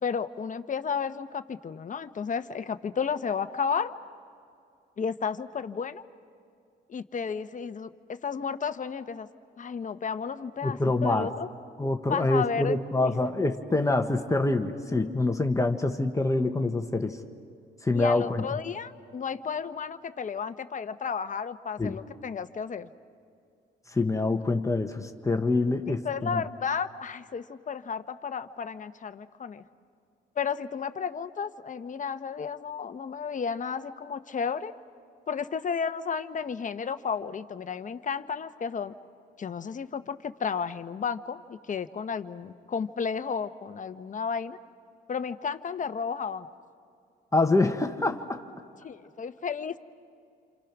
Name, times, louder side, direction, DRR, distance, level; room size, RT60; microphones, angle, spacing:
voice 1, 0.0-3.9 5.0-6.0 6.9-9.3 9.6-11.5 12.1-12.8 13.0-13.1 17.9-22.9 25.9-29.6 30.3-34.7 35.3-38.9 39.4-44.6 45.1-46.5 48.8-49.8, left 6 dB, 40° left, 10 dB, 1.0 m, -32 dB
voice 2, 10.6-11.3 11.8-17.2 17.8-18.4 21.8-22.0 23.9-26.0 26.3-26.4 47.3-48.4, left 2 dB, 15° left, 5 dB, 1.3 m, -26 dB
28.5 x 26.5 x 6.1 m, 2.5 s
cardioid pair, 90°, 20 cm